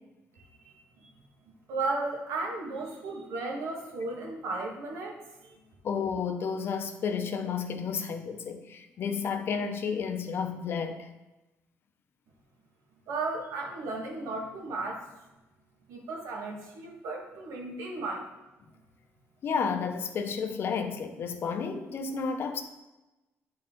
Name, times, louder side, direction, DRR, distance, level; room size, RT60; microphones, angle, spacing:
voice 1, 1.7-5.2 5.4-5.5 13.1-15.1 15.9-18.2, right 3 dB, 85° right, 1.7 m, -34 dB
voice 2, 5.8-11.1 19.4-22.6, left 6 dB, 50° left, 0.7 m, -31 dB
9.5 x 4.4 x 3.8 m
cardioid pair, 155°, 5 cm